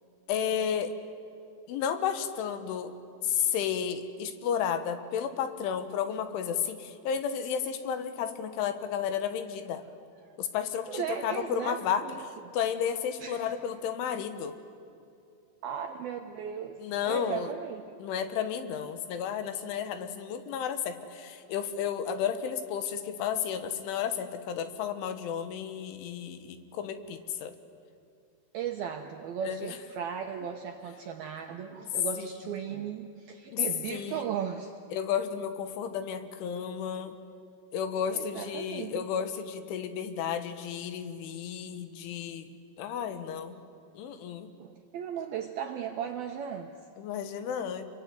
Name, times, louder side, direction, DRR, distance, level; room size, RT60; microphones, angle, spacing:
voice 1, 0.3-0.9 1.7-2.9 3.2-9.8 10.4-14.6 16.8-17.5 18.0-27.5 29.5-29.8 32.2-32.3 33.5-33.6 33.9-34.2 34.9-37.2 37.7-42.5 42.8-43.6 44.0-44.5 47.0-47.8, left 8 dB, 75° left, 9 dB, 3.7 m, -32 dB
voice 2, 10.9-12.5 13.2-13.5 15.6-17.8 28.5-34.7 38.1-39.1 44.6-46.7, right 8 dB, 80° right, 4 dB, 2.2 m, -36 dB
27.0 x 23.0 x 9.4 m, 2.6 s
omnidirectional pair, 5.7 m